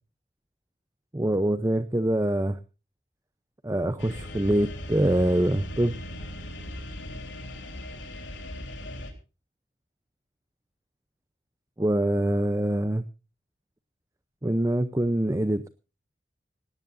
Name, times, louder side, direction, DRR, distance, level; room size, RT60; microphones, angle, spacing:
voice 1, 1.1-2.6 3.6-6.0 11.8-13.0 14.4-15.7, right 1 dB, 15° right, 12 dB, 0.6 m, -24 dB
sound 1, 4.0-9.1, equal, 85° left, 3.7 m, -38 dB
18.0 x 18.0 x 2.6 m, 0.33 s
head